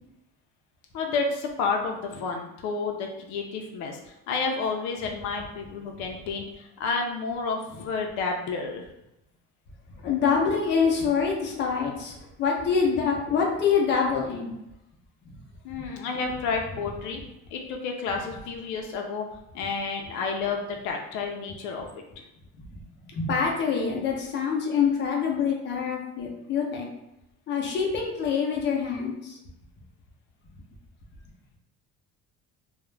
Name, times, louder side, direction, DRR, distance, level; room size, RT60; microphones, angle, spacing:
voice 1, 0.9-4.0 4.3-8.9 15.6-17.2 17.5-19.3 19.5-22.0, left 4 dB, 80° left, 2 dB, 0.5 m, -30 dB
voice 2, 10.0-12.1 12.4-14.6 15.7-15.8 23.2-26.9 27.5-29.4, left 6 dB, 40° left, -1 dB, 0.6 m, -25 dB
2.4 x 2.1 x 3.2 m, 0.88 s
cardioid pair, 145°, 29 cm